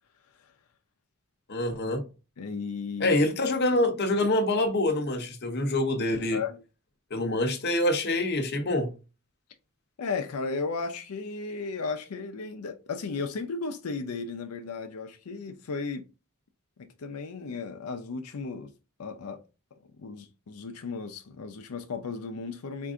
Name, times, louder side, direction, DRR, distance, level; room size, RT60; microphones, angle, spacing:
voice 1, 1.5-2.0 3.0-6.4 7.1-8.9, left 1 dB, 50° left, 0.8 m, -26 dB
voice 2, 2.4-3.2 6.3-6.6 10.0-16.0 16.8-18.7 19.0-19.4 19.7-22.9, left 4 dB, 90° left, 0.5 m, -35 dB
4.6 x 2.5 x 3.6 m
head